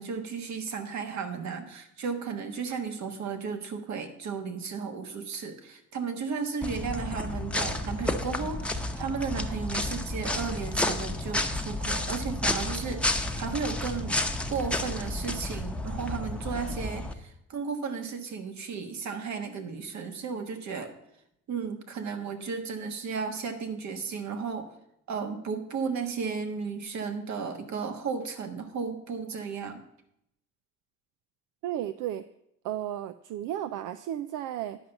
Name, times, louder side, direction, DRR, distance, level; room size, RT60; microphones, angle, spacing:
voice 1, 0.0-14.2 14.5-20.9 21.5-24.7 25.1-29.9, right 5 dB, 65° right, 6 dB, 1.4 m, -34 dB
sound 1, 6.6-17.1, left 1 dB, 5° left, 0.8 m, -31 dB
voice 2, 31.6-32.2 32.6-34.8, right 11 dB, 90° right, 12 dB, 0.5 m, -33 dB
10.5 x 5.4 x 6.9 m, 0.77 s
cardioid pair, 90°, 30 cm